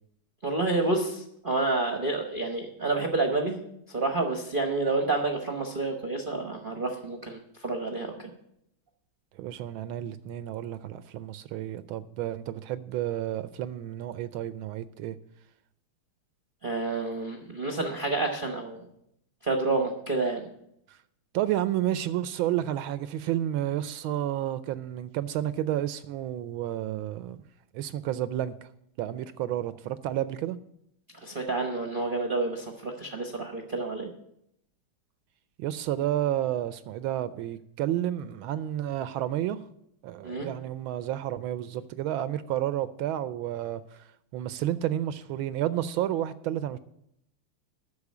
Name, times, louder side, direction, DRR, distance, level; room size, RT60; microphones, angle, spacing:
voice 1, 0.4-3.6 3.9-8.1 16.6-18.8 19.4-20.4 31.2-34.1 40.2-40.5, right 3 dB, 40° right, 0.8 m, -29 dB
voice 2, 9.4-15.2 20.9-21.0 21.3-27.4 27.7-28.7 29.0-30.6 35.6-39.6 40.0-44.1 44.3-46.8, right 12 dB, 75° right, 1.3 m, -31 dB
9.8 x 6.7 x 8.2 m
omnidirectional pair, 2.4 m